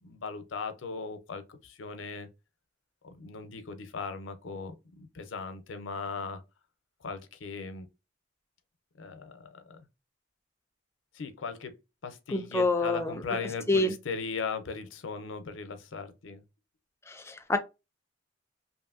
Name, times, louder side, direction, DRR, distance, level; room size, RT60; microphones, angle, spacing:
voice 1, 0.0-2.3 3.0-6.4 7.0-7.9 9.0-9.8 11.1-11.7 12.0-16.4, left 5 dB, 85° left, 0.6 m, -38 dB
voice 2, 12.3-13.2 13.7-13.9 17.1-17.6, left 2 dB, 15° left, 0.3 m, -27 dB
2.9 x 2.6 x 2.4 m
head